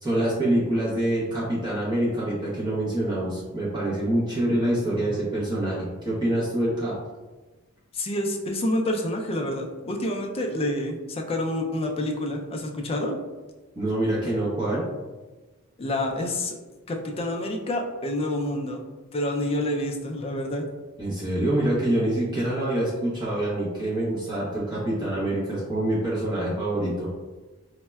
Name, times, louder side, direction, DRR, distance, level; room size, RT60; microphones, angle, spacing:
voice 1, 0.0-6.9 13.8-14.9 21.0-27.1, right 1 dB, 20° right, -7 dB, 0.7 m, -26 dB
voice 2, 7.9-13.2 15.8-16.6 16.9-18.8 19.1-20.6, left 1 dB, 25° left, 2 dB, 0.3 m, -28 dB
4.3 x 2.1 x 2.2 m, 1.2 s
head